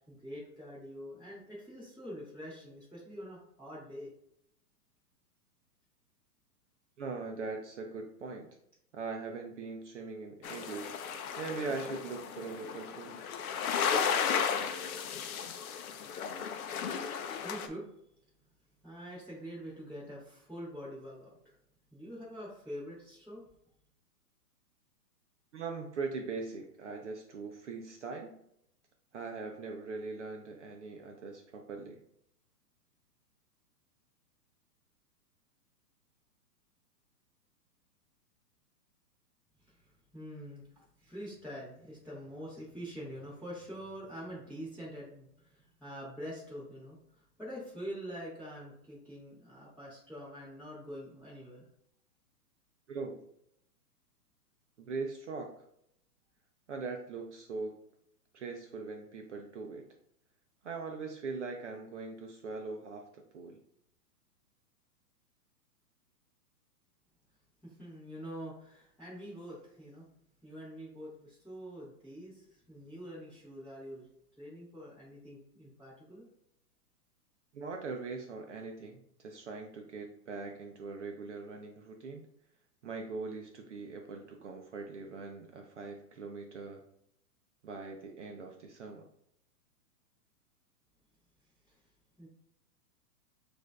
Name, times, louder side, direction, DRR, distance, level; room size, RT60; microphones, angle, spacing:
voice 1, 0.1-4.1 17.4-17.9 18.8-21.4 21.9-23.4 39.7-51.7 67.6-70.0 70.4-74.1 74.4-76.3 92.2-92.3, equal, ahead, -12 dB, 0.8 m, -45 dB
voice 2, 7.0-8.5 8.9-11.0 11.4-13.2 25.5-28.3 29.1-32.0 52.9-53.2 54.8-55.5 56.7-57.8 58.3-59.8 60.6-63.6 77.5-82.2 82.8-86.8 87.6-89.1, right 4 dB, 50° right, 2 dB, 0.5 m, -41 dB
sound 1, 10.4-17.7, left 7 dB, 65° left, 0.5 m, -34 dB
6.3 x 2.6 x 2.3 m, 0.73 s
hypercardioid pair, 170°, 48 cm